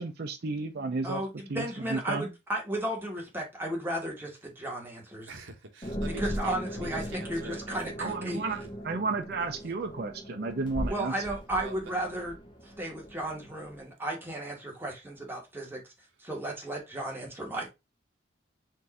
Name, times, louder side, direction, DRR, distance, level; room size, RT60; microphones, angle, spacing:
voice 1, 0.0-1.2 1.5-2.3 8.0-11.1, right 3 dB, 55° right, 0.5 m, -33 dB
voice 2, 1.0-5.3 6.2-8.4 10.8-12.3 12.6-15.9 16.2-17.7, right 1 dB, 10° right, 1.4 m, -34 dB
voice 3, 5.3-8.7 11.5-11.8, right 3 dB, 80° right, 1.1 m, -45 dB
sound 1, 5.8-13.8, equal, 25° left, 0.8 m, -39 dB
4.4 x 2.6 x 4.1 m
head